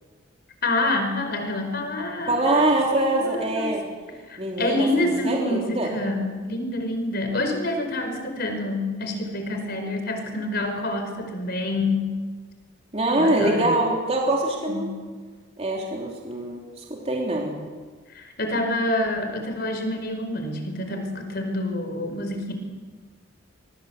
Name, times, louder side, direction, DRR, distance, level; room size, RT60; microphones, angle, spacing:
voice 1, 0.6-3.7 4.3-12.1 13.2-13.7 14.7-15.0 18.1-22.5, left 2 dB, 50° left, 5 dB, 4.8 m, -27 dB
voice 2, 2.3-3.8 4.4-5.9 12.9-14.9 15.6-17.5, right 2 dB, 30° right, -1 dB, 3.5 m, -24 dB
25.0 x 22.5 x 8.1 m, 1.4 s
head